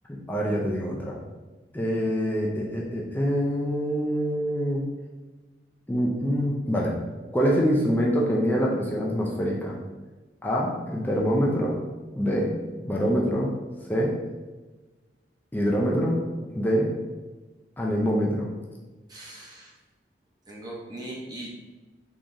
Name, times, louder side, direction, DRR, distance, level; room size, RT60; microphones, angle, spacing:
voice 1, 0.3-1.2 1.7-4.8 5.9-6.9 7.3-9.8 10.4-11.8 12.2-12.5 12.8-13.5 13.9-14.1 15.5-16.9 17.8-18.5, equal, 10° left, -3 dB, 0.4 m, -25 dB
voice 2, 19.1-19.7 20.5-21.5, right 1 dB, 20° right, -3 dB, 0.7 m, -39 dB
3.6 x 3.0 x 2.6 m, 1.2 s
head